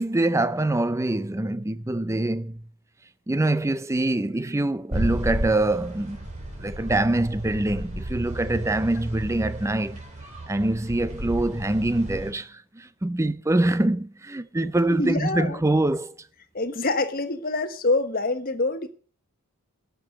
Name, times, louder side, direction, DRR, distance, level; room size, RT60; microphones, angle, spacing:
voice 1, 0.0-2.6 3.3-6.2 6.6-10.0 10.5-16.1, right 2 dB, 15° right, 0.5 m, -24 dB
sound 1, 4.9-12.3, right 1 dB, 30° right, 3.5 m, -33 dB
voice 2, 14.9-15.6 16.5-18.9, left 2 dB, 40° left, 1.3 m, -26 dB
12.0 x 6.9 x 7.6 m
head